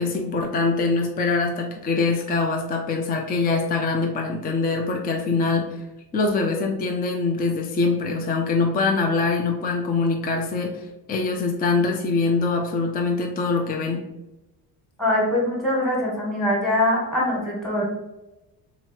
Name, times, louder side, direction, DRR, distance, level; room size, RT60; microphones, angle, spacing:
voice 1, 0.0-5.8 6.1-14.1, left 3 dB, 25° left, 2 dB, 0.5 m, -23 dB
voice 2, 15.0-17.8, left 1 dB, ahead, -3 dB, 1.3 m, -23 dB
3.8 x 3.0 x 4.4 m, 0.99 s
cardioid pair, 140°, 38 cm